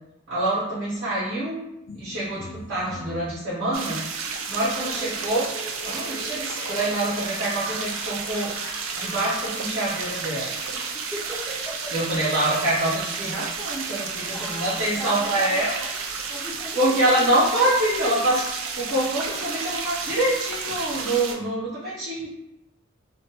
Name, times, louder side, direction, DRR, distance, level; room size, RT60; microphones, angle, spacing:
voice 1, 0.3-1.6 1.9-4.0 4.5-5.5 5.8-8.5 8.9-10.5 11.9-15.7 16.7-18.4 18.8-22.3, right 1 dB, 55° right, -12 dB, 0.9 m, -25 dB
sound 1, 1.9-19.6 19.9-20.8, left 2 dB, 80° left, 0.5 m, -44 dB
sound 2, 3.7-21.4, right 5 dB, 75° right, 0.4 m, -32 dB
voice 2, 4.7-5.2 10.7-12.0 12.2-12.6 14.3-15.9 16.3-18.2, equal, 5° left, -9 dB, 0.4 m, -37 dB
2.5 x 2.1 x 2.8 m, 0.85 s
head